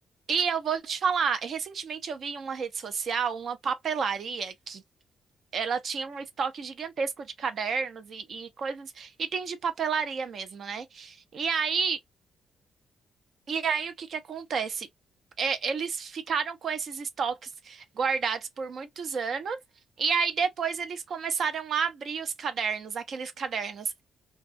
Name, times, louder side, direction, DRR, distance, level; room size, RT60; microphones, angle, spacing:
voice 1, 0.3-4.8 5.5-12.0 13.5-14.9 15.4-19.6 20.0-24.0, right 6 dB, 55° right, 0.5 m, -30 dB
2.3 x 2.2 x 2.5 m
cardioid pair, 120°, 0 cm